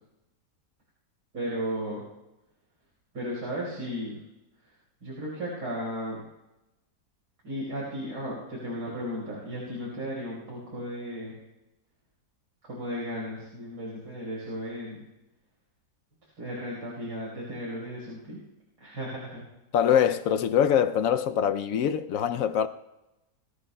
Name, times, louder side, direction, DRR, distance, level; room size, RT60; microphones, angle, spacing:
voice 1, 1.3-2.1 3.1-4.2 5.0-6.2 7.4-11.4 12.6-15.0 16.4-18.4 18.8-19.5, equal, 80° right, 5.2 m, -35 dB
voice 2, 19.7-22.7, left 9 dB, 70° left, 0.8 m, -23 dB
22.5 x 15.5 x 2.2 m
omnidirectional pair, 1.8 m